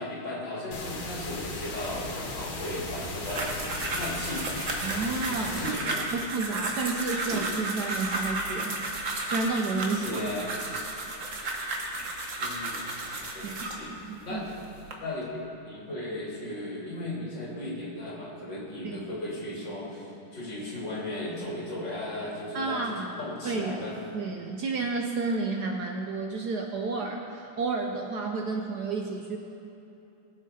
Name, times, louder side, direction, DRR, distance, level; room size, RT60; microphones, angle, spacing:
voice 1, 0.0-3.6 3.9-4.5 5.6-6.0 9.9-10.5 12.4-12.9 13.3-13.9 14.2-14.5 15.0-24.0, left 1 dB, 60° left, -4 dB, 3.3 m, -36 dB
sound 1, 0.7-5.7, left 2 dB, 90° left, 2.4 m, -37 dB
sound 2, 3.0-13.8 14.5-14.9, right 2 dB, 40° right, 1.4 m, -33 dB
voice 2, 4.8-5.8 6.1-8.8 9.3-10.3 13.4-13.5 14.0-14.4 18.8-19.0 22.5-23.1 23.4-23.7 24.1-29.4, right 3 dB, 65° right, 2 dB, 1.1 m, -31 dB
21.0 x 7.5 x 4.2 m, 2.9 s
omnidirectional pair, 2.3 m